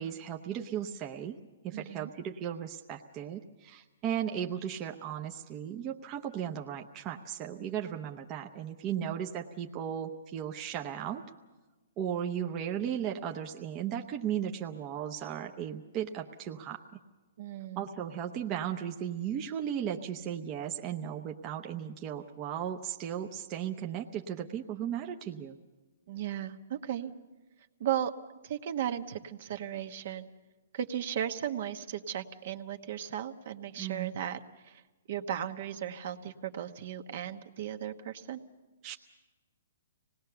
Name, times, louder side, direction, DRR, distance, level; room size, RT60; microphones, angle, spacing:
voice 1, 0.0-1.4 1.6-11.2 12.0-16.8 17.8-25.6 33.8-34.1 38.8-39.0, right 9 dB, 25° right, 3 dB, 0.9 m, -36 dB
voice 2, 1.7-2.1 9.0-9.2 17.4-17.8 26.1-27.1 27.8-28.1 28.4-30.3 30.7-34.8 35.1-38.4, right 10 dB, 55° right, 7 dB, 1.2 m, -36 dB
25.5 x 19.0 x 6.9 m, 1.2 s
hypercardioid pair, 150°, 0 cm